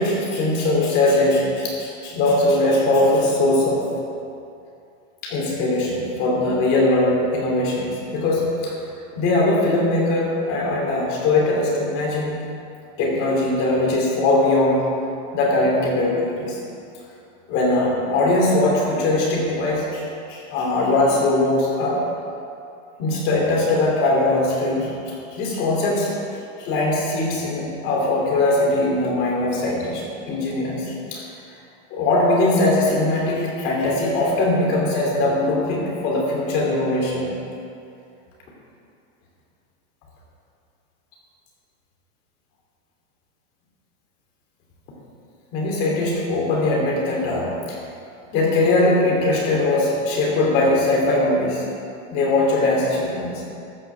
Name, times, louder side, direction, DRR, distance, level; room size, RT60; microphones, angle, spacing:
voice 1, 0.0-3.8 5.2-8.7 9.1-12.3 13.0-14.8 15.3-16.6 17.5-22.0 23.0-26.1 26.6-31.2 31.9-37.3 45.5-47.8 48.3-51.6 52.1-53.4, left 2 dB, 35° left, -3 dB, 3.1 m, -21 dB
14.0 x 6.1 x 6.9 m, 2.6 s
supercardioid pair, 175°, 37 cm